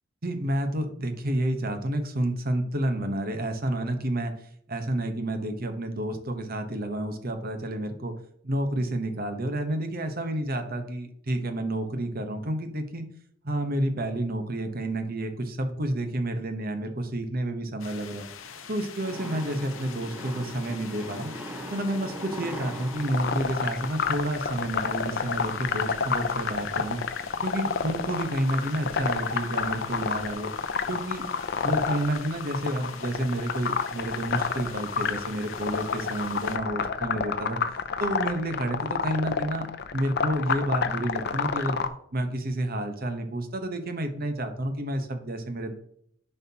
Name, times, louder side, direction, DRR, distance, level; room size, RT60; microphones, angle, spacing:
voice 1, 0.2-4.3 4.7-8.1 8.4-13.0 13.4-18.2 18.7-21.3 21.7-27.0 27.4-30.5 30.9-31.2 31.6-37.6 38.0-39.7 39.9-41.8 42.1-45.7, right 1 dB, 50° right, 7 dB, 1.1 m, -30 dB
sound 1, 17.8-36.6, left 7 dB, 80° left, 0.9 m, -45 dB
sound 2, 19.0-24.4, equal, 10° right, 0.8 m, -40 dB
sound 3, 23.0-41.9, left 5 dB, 55° left, 0.6 m, -29 dB
9.8 x 5.6 x 2.9 m, 0.67 s
head